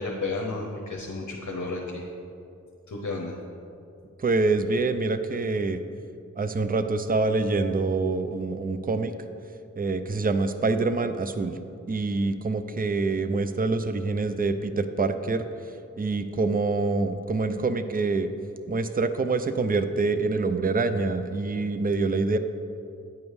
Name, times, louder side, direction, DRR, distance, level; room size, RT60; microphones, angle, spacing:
voice 1, 0.0-2.0 2.9-3.4, left 3 dB, 70° left, 0 dB, 0.8 m, -32 dB
voice 2, 4.2-5.8 6.4-9.1 9.8-11.6 11.9-15.4 16.0-18.3 18.7-22.4, right 3 dB, 30° right, 10 dB, 0.5 m, -26 dB
9.1 x 5.3 x 4.7 m, 2.5 s
wide cardioid pair, 55°, 31 cm